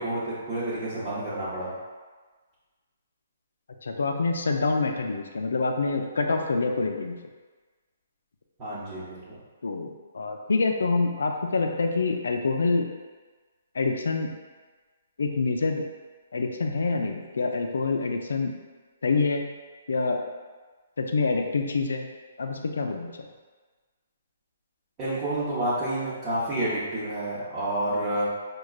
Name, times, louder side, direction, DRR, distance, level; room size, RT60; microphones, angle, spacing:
voice 1, 0.0-1.7 8.6-9.4 25.0-28.3, right 1 dB, 25° right, -13 dB, 0.9 m, -29 dB
voice 2, 3.8-7.1 9.6-12.9 13.8-14.3 15.2-15.8 16.3-18.5 19.0-19.4 19.9-20.2 21.0-22.1 22.4-23.1, left 3 dB, 85° left, 4 dB, 0.4 m, -26 dB
4.7 x 2.2 x 2.3 m, 1.4 s
hypercardioid pair, 150°, 0 cm